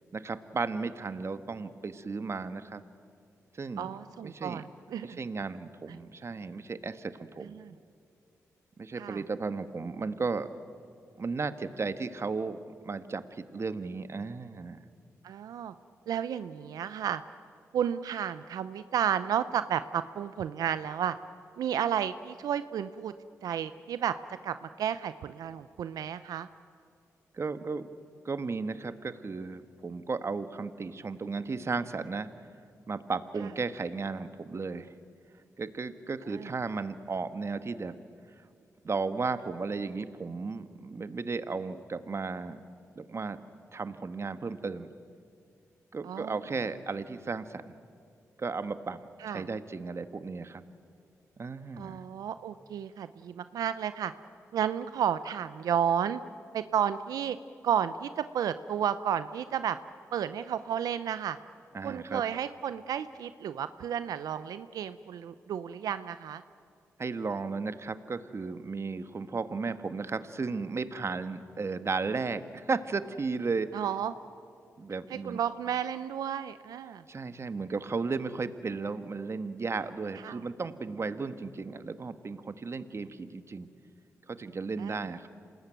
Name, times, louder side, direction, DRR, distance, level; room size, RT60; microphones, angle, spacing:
voice 1, 0.1-2.8 3.5-4.6 5.0-7.6 8.8-10.5 11.2-12.6 12.8-14.8 27.3-27.9 28.2-32.3 32.9-34.9 35.6-38.0 38.8-42.6 42.9-43.4 43.7-44.9 45.9-47.7 48.4-49.0 49.3-50.6 51.4-52.0 61.7-62.2 67.0-73.8 74.8-75.4 77.1-83.7 84.3-85.3, right 4 dB, 45° right, 11 dB, 1.5 m, -34 dB
voice 2, 3.8-4.6 4.9-5.2 7.4-7.7 8.9-9.2 15.2-15.7 16.1-17.2 17.7-21.1 21.6-23.1 23.4-24.2 24.4-26.5 36.3-36.5 46.0-46.4 49.2-49.5 51.8-54.1 54.5-56.2 56.5-57.4 57.6-59.8 60.1-61.4 61.8-66.4 73.7-74.1 75.1-77.0 80.2-80.4 84.8-85.0, right 9 dB, 80° right, 13 dB, 0.6 m, -32 dB
27.0 x 19.5 x 9.2 m, 2.3 s
supercardioid pair, 50°, 6 cm